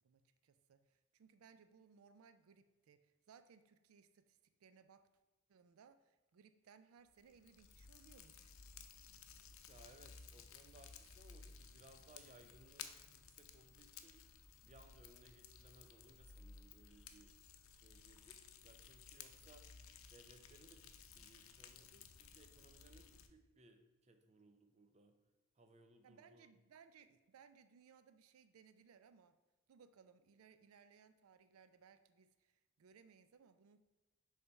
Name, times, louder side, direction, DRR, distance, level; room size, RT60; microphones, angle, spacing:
voice 1, 0.0-5.1 5.5-8.6 26.0-29.4 29.7-33.8, right 6 dB, 85° right, 11 dB, 0.4 m, -65 dB
Fire, 7.1-23.3, left 6 dB, 80° left, 0.6 m, -58 dB
voice 2, 9.7-14.2 14.6-17.3 17.7-19.6 20.1-25.2 25.6-26.5, right 2 dB, 30° right, 6 dB, 0.6 m, -65 dB
6.9 x 3.4 x 5.3 m, 1.2 s
head